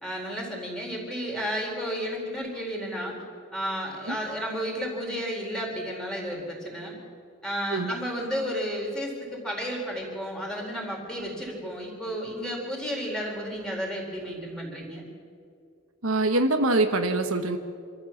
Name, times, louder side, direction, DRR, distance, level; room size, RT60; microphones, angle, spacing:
voice 1, 0.0-3.1 3.5-7.0 7.4-15.1, equal, 5° left, -1 dB, 4.2 m, -32 dB
voice 2, 16.0-17.6, right 2 dB, 75° right, 6 dB, 1.3 m, -24 dB
26.5 x 14.0 x 7.4 m, 2.2 s
head